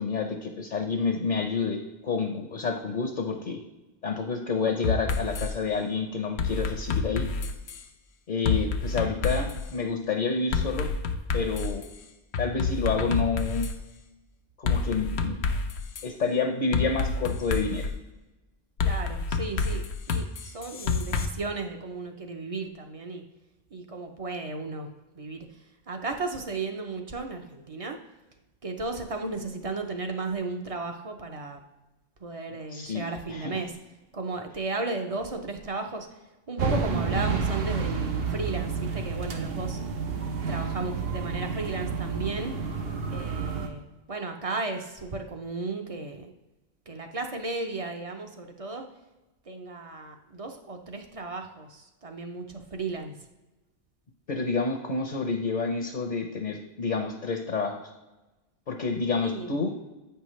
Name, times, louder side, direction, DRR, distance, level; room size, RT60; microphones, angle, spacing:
voice 1, 0.0-3.6 4.0-7.3 8.3-10.9 11.3-11.8 12.4-13.7 14.6-15.4 16.0-17.9 32.7-33.6 54.3-57.9 58.7-59.7, left 4 dB, 50° left, 4 dB, 0.8 m, -29 dB
sound 1, 4.8-5.5 6.4-7.8 8.4-9.6 10.5-11.8 12.3-13.8 14.7-16.0 16.7-17.9 18.8-21.3, left 4 dB, 90° left, 0.9 m, -28 dB
voice 2, 18.8-19.8 20.1-23.2 23.7-24.9 25.2-25.5 25.9-28.0 28.6-31.6 32.2-33.7 34.1-36.1 36.5-39.8 40.5-42.5 43.1-43.8 44.1-46.3 46.9-48.9 49.5-53.1 59.2-59.6, right 3 dB, 40° right, 4 dB, 0.7 m, -34 dB
sound 2, 36.6-43.7, right 5 dB, 70° right, 1.0 m, -30 dB
8.3 x 5.6 x 3.1 m, 1.1 s
omnidirectional pair, 1.1 m